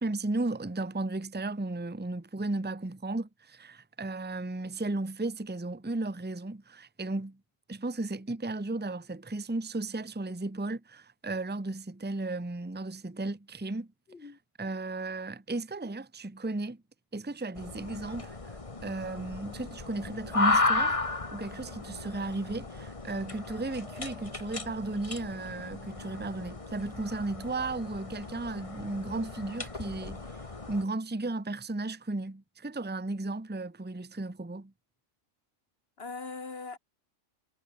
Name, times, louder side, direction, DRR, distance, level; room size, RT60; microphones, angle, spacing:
voice 1, 0.0-7.4 7.7-13.9 14.6-16.8 17.1-30.4 30.7-34.7, right 2 dB, 10° right, 1.0 m, -35 dB
voice 2, 14.1-14.4 36.0-36.8, left 4 dB, 45° left, 2.1 m, -40 dB
sound 1, 17.5-30.8, left 3 dB, 25° left, 1.6 m, -34 dB
omnidirectional pair, 1.4 m